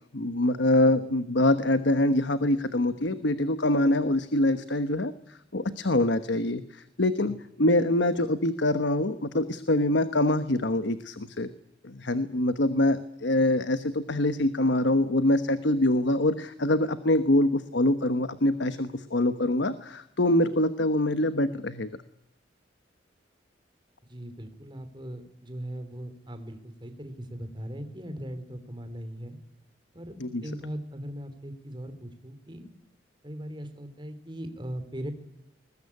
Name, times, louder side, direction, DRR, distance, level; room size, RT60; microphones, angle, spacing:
voice 1, 0.1-11.5 11.8-21.9 30.2-30.4, left 1 dB, 70° left, 12 dB, 1.2 m, -25 dB
voice 2, 24.1-29.4 29.9-30.1 30.4-32.7 33.2-35.1, equal, 25° right, 8 dB, 3.3 m, -39 dB
21.5 x 20.0 x 9.8 m, 0.78 s
head